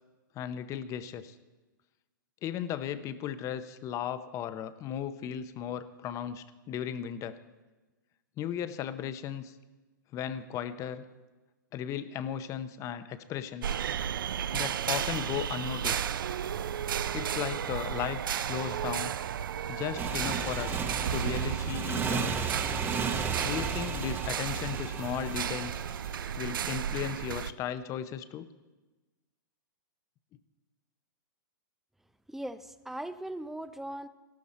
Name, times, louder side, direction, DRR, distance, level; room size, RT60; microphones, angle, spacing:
voice 1, 0.3-1.3 2.4-7.4 8.4-9.5 10.1-11.0 11.7-13.8 14.5-16.0 17.1-19.1 19.7-20.8 21.1-22.4 23.4-25.7 26.4-28.5, left 9 dB, 30° left, 12 dB, 0.8 m, -36 dB
sound 1, 13.6-27.5, right 9 dB, 80° right, 0.5 m, -33 dB
Motorcycle, 20.0-26.3, right 5 dB, 20° right, 1.0 m, -34 dB
voice 2, 32.3-34.1, right 1 dB, 5° right, 12 dB, 0.5 m, -39 dB
14.5 x 12.5 x 4.3 m, 1.2 s
hypercardioid pair, 130°, 11 cm